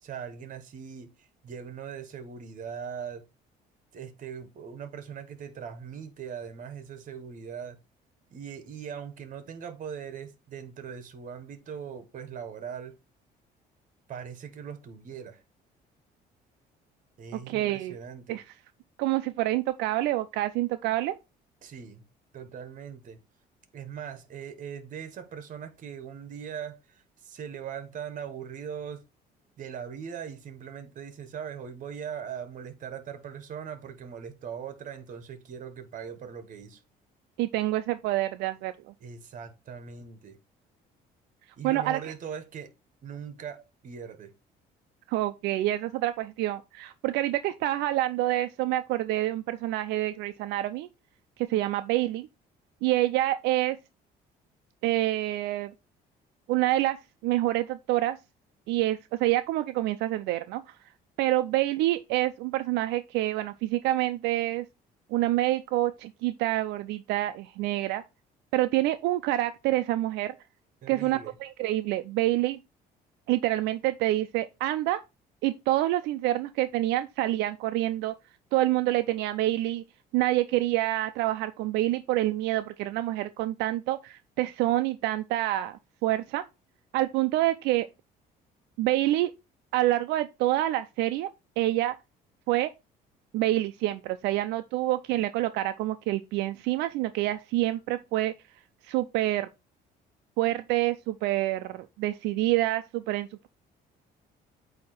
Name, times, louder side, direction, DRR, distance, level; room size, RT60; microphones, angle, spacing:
voice 1, 0.0-3.3 3.9-7.8 8.3-13.0 14.1-15.4 17.2-18.4 21.6-22.0 22.3-23.2 23.7-29.0 29.6-36.8 39.0-40.4 41.6-42.7 43.0-44.3 70.8-71.4, right 7 dB, 50° right, 1.3 m, -40 dB
voice 2, 17.5-18.0 18.3-18.4 19.0-21.2 37.4-38.9 41.6-42.0 45.1-50.9 51.4-52.3 52.8-53.8 54.8-55.7 56.5-57.0 57.2-58.2 58.7-60.6 61.2-64.7 65.1-68.0 68.5-70.3 70.9-72.6 73.3-75.0 75.4-78.1 78.5-79.8 80.1-86.4 86.9-87.9 88.8-89.3 89.7-91.3 91.6-91.9 92.5-92.7 93.3-98.3 98.9-99.5 100.4-103.5, right 15 dB, 90° right, 0.5 m, -27 dB
8.5 x 2.9 x 4.2 m
cardioid pair, 110°, 17 cm